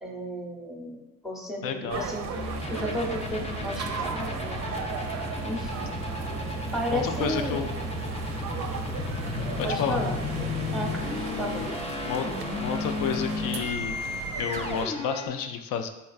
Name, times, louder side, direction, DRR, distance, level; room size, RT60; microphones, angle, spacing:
voice 1, 0.0-2.3 2.7-4.7 5.4-6.0 6.7-7.6 9.6-10.2 10.7-11.0 11.4-11.7, equal, ahead, 0 dB, 0.8 m, -33 dB
voice 2, 1.6-2.1 6.9-7.7 9.6-10.0 12.0-12.3 12.6-14.0 14.4-15.9, left 7 dB, 70° left, 7 dB, 0.5 m, -30 dB
sound 1, 1.9-14.9, right 6 dB, 50° right, 0.5 m, -36 dB
sound 2, 2.3-15.3, left 3 dB, 20° left, 0.5 m, -33 dB
4.2 x 3.2 x 2.4 m, 0.99 s
supercardioid pair, 60°, 35 cm